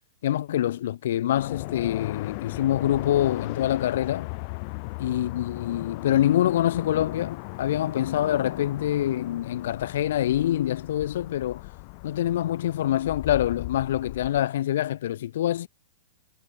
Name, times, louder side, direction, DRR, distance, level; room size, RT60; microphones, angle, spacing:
voice 1, 0.2-4.3 5.0-11.6 12.0-15.7, left 12 dB, 65° left, 1.9 m, -25 dB
sound 1, 1.3-14.4, left 33 dB, 50° left, 1.7 m, -37 dB
hypercardioid pair, 115°, 0 cm